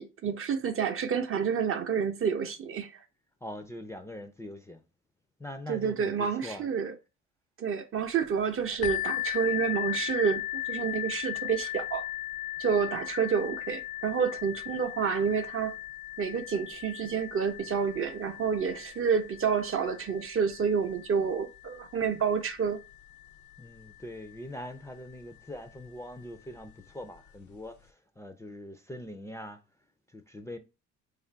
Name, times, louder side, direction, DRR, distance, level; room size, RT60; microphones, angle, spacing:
voice 1, 0.0-2.9 5.7-6.9 7.6-12.1 12.6-15.7 16.2-22.8, right 6 dB, 45° right, 0.6 m, -29 dB
voice 2, 3.4-4.8 5.4-6.7 23.6-29.6 30.1-30.6, left 1 dB, 10° left, 0.4 m, -42 dB
sound 1, 8.8-24.4 25.1-25.2 25.8-25.9, left 15 dB, 70° left, 0.5 m, -38 dB
3.2 x 2.5 x 4.3 m
cardioid pair, 90°, 30 cm